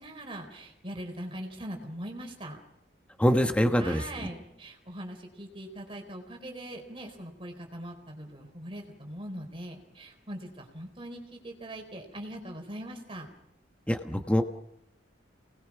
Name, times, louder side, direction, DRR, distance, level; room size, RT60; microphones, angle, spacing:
voice 1, 0.0-2.6 3.8-13.3, right 1 dB, 30° right, 3 dB, 4.2 m, -41 dB
voice 2, 3.2-4.0 13.9-14.4, equal, 5° left, 5 dB, 1.2 m, -24 dB
28.0 x 20.0 x 6.1 m, 0.79 s
head